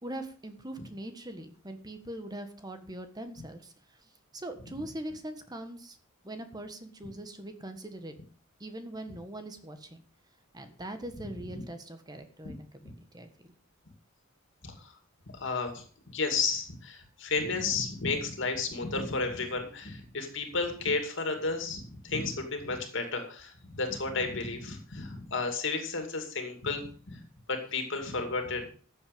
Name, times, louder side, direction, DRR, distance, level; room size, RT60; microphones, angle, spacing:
voice 1, 0.0-3.7 4.3-6.0 6.2-8.1 8.6-10.0 10.5-13.5, right 1 dB, 20° right, 8 dB, 1.5 m, -42 dB
voice 2, 14.6-14.9 15.3-27.2 27.5-28.7, left 4 dB, 60° left, 5 dB, 2.6 m, -32 dB
14.0 x 7.9 x 5.3 m, 0.43 s
head